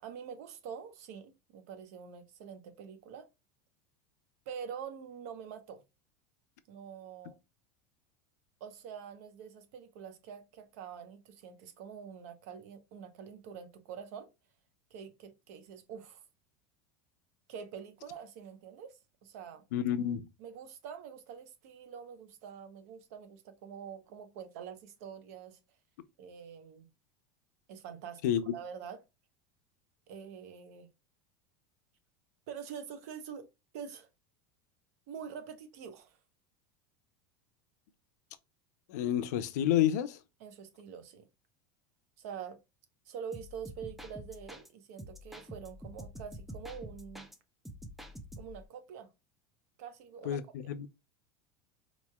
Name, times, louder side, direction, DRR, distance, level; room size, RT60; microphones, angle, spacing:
voice 1, 0.0-3.3 4.5-5.8 6.7-7.4 8.6-14.3 14.9-16.2 17.5-19.6 20.4-25.6 26.2-26.9 27.7-28.2 28.5-29.0 30.1-30.9 32.5-33.5 33.7-34.1 35.1-36.2 40.4-41.3 42.2-42.6 43.1-47.3 48.4-49.1 49.8-50.4, right 7 dB, 65° right, 0.8 m, -45 dB
voice 2, 19.7-20.2 28.2-28.4 38.9-40.2 50.2-50.9, left 11 dB, 80° left, 0.5 m, -29 dB
sound 1, 43.3-44.7 45.0-47.4 47.6-48.7, equal, ahead, 0.3 m, -47 dB
4.3 x 3.0 x 2.2 m
supercardioid pair, 170°, 9 cm